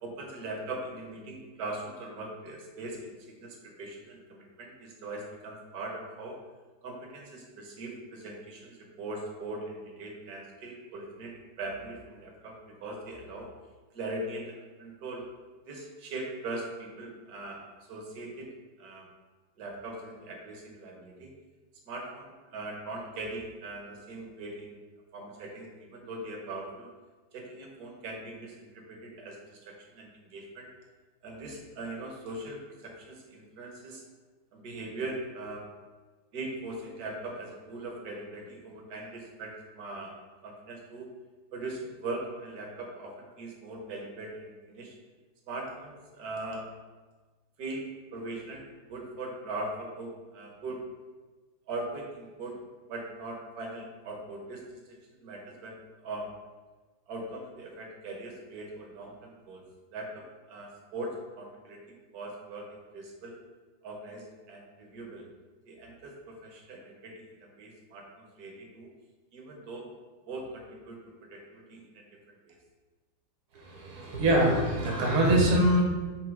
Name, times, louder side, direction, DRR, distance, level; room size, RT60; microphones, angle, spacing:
voice 1, 0.0-3.1 3.4-6.4 6.8-13.5 13.9-15.3 15.6-18.5 18.8-19.1 19.6-21.3 21.9-24.8 25.1-26.9 27.3-30.7 31.2-34.0 34.5-35.6 36.3-40.1 40.4-41.1 41.5-45.0 45.5-46.7 47.6-47.9 48.1-50.8 51.7-56.3 57.1-59.6 59.9-63.3 63.8-65.2 65.7-68.9 69.3-69.9 70.3-71.0 71.3-72.6, right 2 dB, 55° right, 0 dB, 1.3 m, -40 dB
voice 2, 73.5-75.8, right 1 dB, 70° right, -1 dB, 2.1 m, -24 dB
7.2 x 2.9 x 4.7 m, 1.3 s
omnidirectional pair, 2.4 m